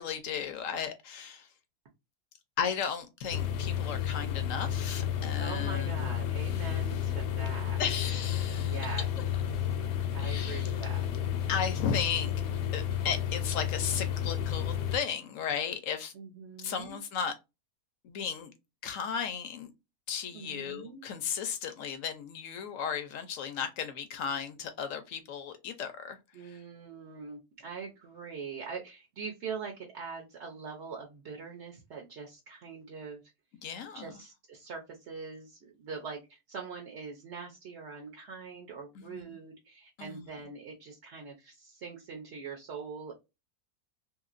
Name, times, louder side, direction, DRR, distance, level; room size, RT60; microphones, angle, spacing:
voice 1, 0.0-1.5 2.6-6.1 7.8-8.9 10.2-10.7 11.5-12.3 12.7-16.1 16.6-17.3 18.0-18.5 18.8-19.7 20.1-26.6 33.6-34.1 39.0-39.4 40.0-40.3, left 7 dB, 70° left, 0.8 m, -35 dB
sound 1, 3.3-15.0, left 9 dB, 85° left, 1.1 m, -32 dB
voice 2, 5.4-7.8 8.6-9.0 10.1-11.1 16.1-17.0 20.3-21.0 26.3-33.2 33.9-43.1, right 5 dB, 55° right, 0.8 m, -43 dB
2.9 x 2.9 x 2.4 m
omnidirectional pair, 1.7 m